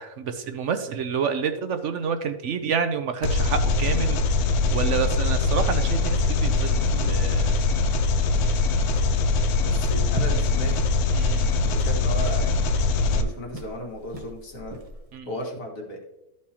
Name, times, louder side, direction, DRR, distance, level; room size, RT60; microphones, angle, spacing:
voice 1, 0.0-4.2 4.7-7.6 11.1-11.5 15.1-15.3, right 6 dB, 65° right, 8 dB, 0.8 m, -28 dB
Engine, 3.2-13.2, left 3 dB, 85° left, 1.1 m, -22 dB
sound 1, 5.9-15.2, right 1 dB, 35° right, 0.6 m, -41 dB
voice 2, 9.6-10.9 11.6-12.8 13.1-14.8 15.3-16.0, equal, 65° left, -1 dB, 2.1 m, -35 dB
13.5 x 4.7 x 2.8 m, 0.93 s
omnidirectional pair, 1.6 m